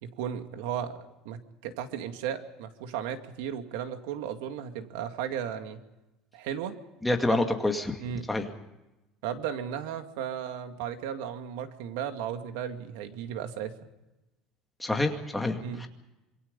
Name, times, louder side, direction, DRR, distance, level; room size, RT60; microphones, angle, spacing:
voice 1, 0.0-5.8 6.3-6.8 7.3-7.4 8.0-8.3 9.2-13.8 15.6-15.9, right 9 dB, 90° right, 7 dB, 2.3 m, -35 dB
voice 2, 7.0-7.9 8.3-8.5 14.8-15.9, left 2 dB, 5° left, 3 dB, 2.3 m, -27 dB
26.5 x 23.0 x 5.4 m, 0.99 s
cardioid pair, 145°, 0 cm